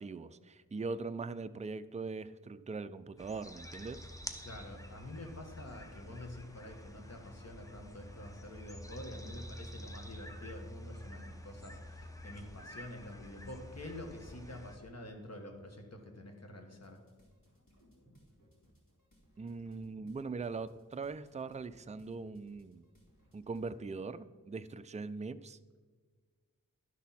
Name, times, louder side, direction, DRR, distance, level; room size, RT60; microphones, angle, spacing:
voice 1, 0.0-4.0 19.4-22.8 23.3-25.6, right 4 dB, 20° right, 12 dB, 0.3 m, -41 dB
sound 1, 3.2-14.8, equal, 10° left, 0.8 m, -48 dB
voice 2, 4.4-17.0, left 1 dB, 50° left, 3 dB, 1.5 m, -48 dB
sound 2, 16.7-23.9, equal, 80° left, 2.6 m, -65 dB
11.5 x 6.1 x 4.2 m, 1.5 s
wide cardioid pair, 70°, 34 cm